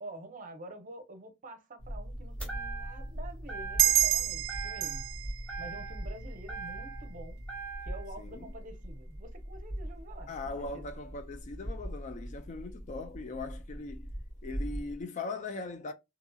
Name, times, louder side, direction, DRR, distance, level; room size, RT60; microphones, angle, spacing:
voice 1, 0.0-5.1 5.6-7.4 7.8-10.9, right 1 dB, 40° right, 0.7 m, -47 dB
sound 1, 1.8-15.0, equal, 55° left, 1.1 m, -41 dB
sound 2, 2.4-3.1 3.5-4.1 4.5-5.2 5.5-7.1 7.5-8.1, right 5 dB, 5° left, 0.7 m, -42 dB
sound 3, 3.8-6.9, right 14 dB, 75° right, 0.3 m, -30 dB
voice 2, 8.2-8.5 10.3-14.1 14.4-15.9, left 3 dB, 40° left, 0.3 m, -40 dB
2.9 x 2.7 x 2.2 m
head